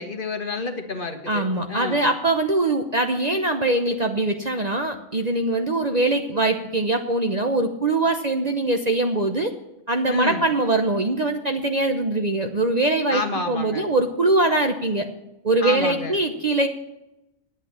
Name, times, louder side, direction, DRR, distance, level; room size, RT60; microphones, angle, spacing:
voice 1, 0.0-2.0 10.1-10.5 13.1-13.9 15.6-16.2, left 3 dB, 45° left, 6 dB, 1.4 m, -29 dB
voice 2, 1.3-9.5 9.9-13.2 13.5-15.1 15.4-16.7, right 2 dB, 40° right, 5 dB, 0.8 m, -22 dB
10.5 x 8.2 x 7.4 m, 0.89 s
omnidirectional pair, 1.3 m